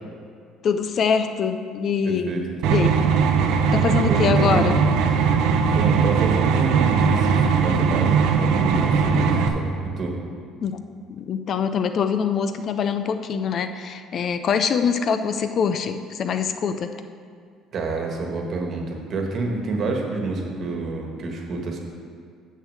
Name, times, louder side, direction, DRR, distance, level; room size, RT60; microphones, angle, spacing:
voice 1, 0.6-2.9 3.7-4.8 10.6-10.8 11.1-16.9, left 6 dB, 40° left, 9 dB, 0.4 m, -24 dB
voice 2, 2.0-2.8 4.1-4.7 5.7-10.2 17.7-21.8, right 3 dB, 40° right, 1 dB, 1.4 m, -28 dB
sound 1, 2.6-9.5, right 6 dB, 80° right, 0.8 m, -19 dB
6.5 x 6.4 x 7.6 m, 2.1 s
cardioid pair, 145°, 0 cm